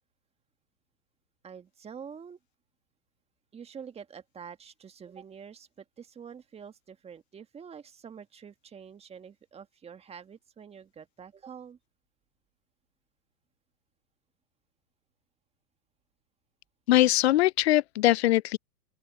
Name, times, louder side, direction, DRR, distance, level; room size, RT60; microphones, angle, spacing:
voice 1, 1.4-2.4 3.5-11.8, right 7 dB, 10° right, 1.8 m, -46 dB
voice 2, 16.9-18.6, left 15 dB, 40° left, 0.5 m, -22 dB
open air
hypercardioid pair, 125°, 50 cm